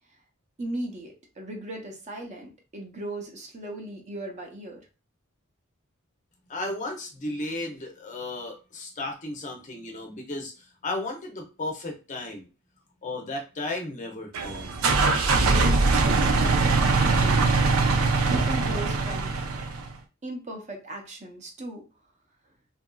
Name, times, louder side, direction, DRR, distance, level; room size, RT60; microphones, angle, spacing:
voice 1, 0.6-4.8 15.9-17.7 18.2-19.3 20.2-21.8, right 1 dB, 35° right, 1 dB, 0.6 m, -37 dB
voice 2, 6.5-12.5 13.0-14.7, left 2 dB, 35° left, 2 dB, 0.6 m, -34 dB
sound 1, 14.3-19.9, right 3 dB, 85° right, 0.4 m, -22 dB
2.7 x 2.5 x 2.2 m, 0.31 s
head